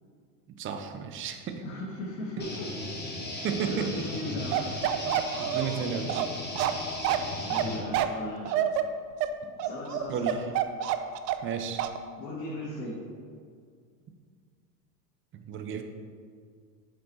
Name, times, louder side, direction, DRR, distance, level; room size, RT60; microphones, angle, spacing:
voice 1, 0.6-1.6 3.4-4.0 5.4-6.3 9.4-9.5 10.1-10.4 11.4-11.8 15.3-15.8, right 7 dB, 25° right, 7 dB, 0.6 m, -33 dB
voice 2, 1.6-2.7 3.3-4.7 7.4-8.6 9.6-10.4 12.2-13.0, left 1 dB, 80° left, -6 dB, 2.0 m, -37 dB
sound 1, 2.4-7.8, left 2 dB, 20° left, 1.8 m, -37 dB
Bark, 4.5-11.5 11.8-12.0, right 11 dB, 75° right, 0.6 m, -28 dB
7.6 x 5.2 x 4.2 m, 2.1 s
supercardioid pair, 115°, 50 cm